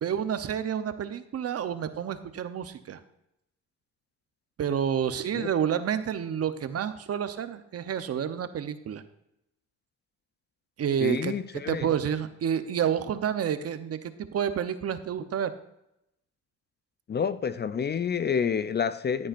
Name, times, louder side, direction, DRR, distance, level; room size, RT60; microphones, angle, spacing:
voice 1, 0.0-3.0 4.6-9.0 10.8-11.3 11.7-15.5, right 8 dB, 55° right, 0.9 m, -29 dB
voice 2, 11.0-11.9 17.1-19.3, left 7 dB, 35° left, 0.5 m, -28 dB
14.0 x 8.7 x 2.6 m
cardioid pair, 90°, 30 cm